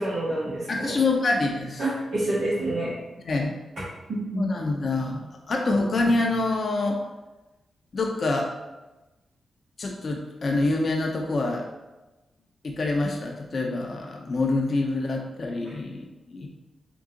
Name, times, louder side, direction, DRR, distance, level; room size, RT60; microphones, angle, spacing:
voice 1, 0.0-1.0 1.8-2.9 4.1-4.4 5.7-5.8 15.6-15.7, right 1 dB, 70° right, -11 dB, 1.3 m, -28 dB
voice 2, 0.7-1.8 3.3-3.6 4.3-5.2 5.5-7.0 7.9-8.5 9.8-11.7 12.6-16.5, left 2 dB, 55° left, 1 dB, 0.6 m, -26 dB
3.8 x 2.7 x 3.8 m, 1.1 s
supercardioid pair, 45°, 0 cm